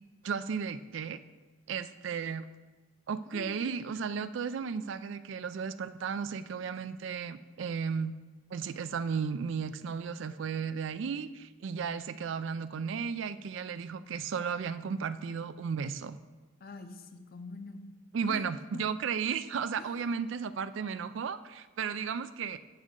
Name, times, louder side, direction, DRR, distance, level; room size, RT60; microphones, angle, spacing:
voice 1, 0.2-1.2 1.7-2.5 3.1-8.1 8.5-16.2 18.1-22.6, right 6 dB, 65° right, 13 dB, 0.4 m, -34 dB
voice 2, 3.3-3.7 16.6-17.9 18.2-18.5 19.8-20.0, left 2 dB, 45° left, 7 dB, 0.7 m, -45 dB
8.2 x 7.8 x 3.7 m, 1.2 s
head